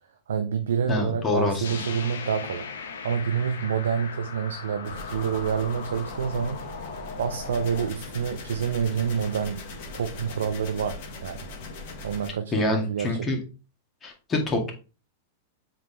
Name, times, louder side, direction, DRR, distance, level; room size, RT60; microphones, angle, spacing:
voice 1, 0.3-6.6 7.2-9.6 9.9-11.4 12.0-13.2, right 7 dB, 70° right, 0.6 m, -28 dB
voice 2, 0.9-1.8 12.5-13.4 14.0-14.7, left 2 dB, 25° left, 2.1 m, -26 dB
sound 1, 1.6-7.9, left 5 dB, 70° left, 1.2 m, -38 dB
sound 2, 4.8-12.3, left 3 dB, 55° left, 1.7 m, -40 dB
7.4 x 4.2 x 3.4 m
figure-of-eight pair, 95°, 0 cm